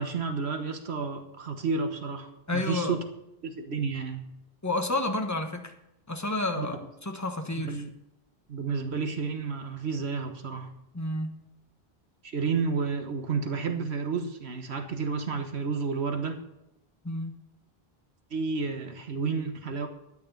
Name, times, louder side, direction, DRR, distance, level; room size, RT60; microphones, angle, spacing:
voice 1, 0.0-3.0 3.4-4.3 6.6-6.7 7.6-7.9 8.5-10.7 12.2-16.4 18.3-19.9, right 5 dB, 90° right, 6 dB, 1.6 m, -31 dB
voice 2, 2.5-3.0 4.6-5.7 6.1-7.8 10.9-11.4 17.0-17.4, left 2 dB, 15° left, 5 dB, 1.2 m, -30 dB
12.5 x 9.6 x 5.7 m, 0.87 s
omnidirectional pair, 1.1 m